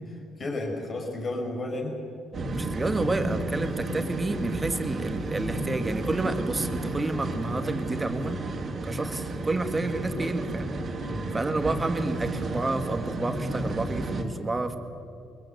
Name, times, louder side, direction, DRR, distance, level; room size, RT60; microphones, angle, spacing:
voice 1, 0.1-1.9 11.0-11.4, left 2 dB, 40° left, 2 dB, 4.9 m, -33 dB
sound 1, 2.3-14.2, right 2 dB, 45° right, 2.9 m, -32 dB
voice 2, 2.5-8.4 8.8-10.7 11.3-14.8, right 2 dB, 20° right, 7 dB, 1.9 m, -30 dB
23.5 x 21.0 x 8.0 m, 2.6 s
cardioid pair, 100°, 0 cm